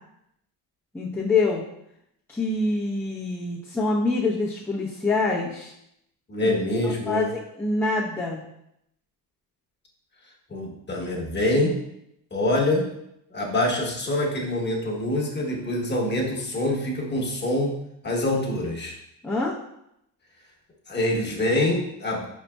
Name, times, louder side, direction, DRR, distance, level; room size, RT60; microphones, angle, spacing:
voice 1, 0.9-1.6 2.3-5.7 6.8-7.2 7.6-8.4 19.2-19.5, left 3 dB, 5° left, -7 dB, 0.7 m, -25 dB
voice 2, 6.3-7.3 10.5-11.8 12.3-12.9 13.3-17.8 18.0-18.9 20.9-22.3, left 1 dB, 25° left, -1 dB, 1.2 m, -25 dB
5.0 x 4.1 x 2.3 m, 0.79 s
supercardioid pair, 85°, 42 cm